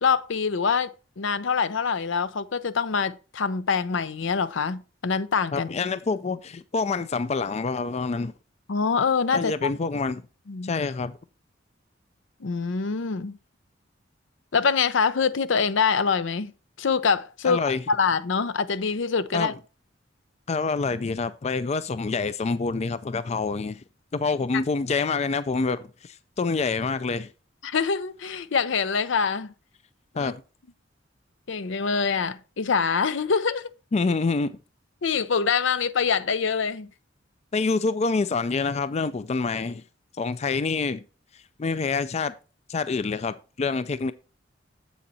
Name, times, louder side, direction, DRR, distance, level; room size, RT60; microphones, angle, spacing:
voice 1, 0.0-0.9 1.2-5.7 8.7-9.7 10.5-10.7 12.4-13.3 14.5-16.5 16.8-17.6 17.9-19.5 25.0-25.1 27.6-29.5 30.1-30.3 31.5-33.6 35.0-36.9, left 5 dB, 75° left, 0.6 m, -25 dB
voice 2, 5.5-8.3 9.3-10.2 10.6-11.2 17.4-17.8 19.3-19.5 20.5-23.8 24.1-27.3 30.2-30.4 33.9-34.6 37.5-39.8 40.2-41.0 41.6-42.3 42.7-44.1, left 4 dB, 35° left, 0.4 m, -26 dB
7.6 x 7.1 x 4.1 m
head